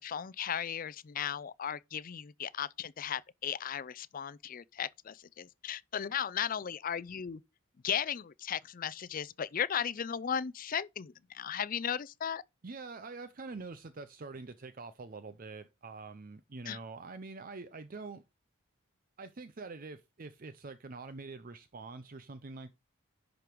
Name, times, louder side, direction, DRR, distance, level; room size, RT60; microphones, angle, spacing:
voice 1, 0.0-7.4 7.8-12.4 16.7-16.8, left 8 dB, 40° left, 0.4 m, -36 dB
voice 2, 12.6-18.2 19.2-22.7, right 3 dB, 40° right, 0.6 m, -45 dB
11.0 x 5.1 x 4.6 m
head